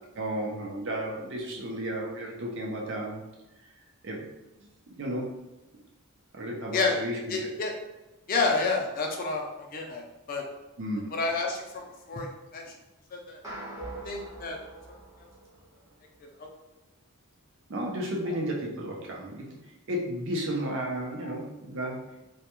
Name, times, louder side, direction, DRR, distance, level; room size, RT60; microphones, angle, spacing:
voice 1, 0.2-3.2 4.0-4.2 4.9-5.3 6.3-7.3 10.8-11.1 17.7-19.5 19.9-22.2, right 1 dB, 55° right, -1 dB, 0.6 m, -33 dB
voice 2, 7.3-7.7 8.3-10.0 10.3-10.4 11.1-12.3 12.5-12.6 13.3-13.4 14.0-14.6 16.4-16.5 18.3-18.4 21.2-21.4, left 3 dB, 40° left, 1 dB, 0.4 m, -29 dB
sound 1, 13.4-15.9, right 2 dB, 15° right, 0.6 m, -43 dB
2.2 x 2.2 x 2.9 m, 1.0 s
head